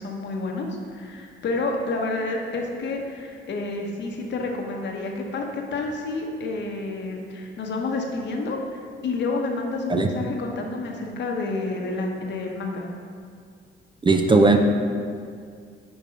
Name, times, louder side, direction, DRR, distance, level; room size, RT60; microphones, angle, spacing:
voice 1, 0.0-12.9, left 3 dB, 65° left, 1 dB, 1.0 m, -29 dB
voice 2, 14.0-14.6, right 3 dB, 25° right, 5 dB, 0.5 m, -17 dB
5.5 x 5.3 x 4.9 m, 2.2 s
cardioid pair, 90°, 20 cm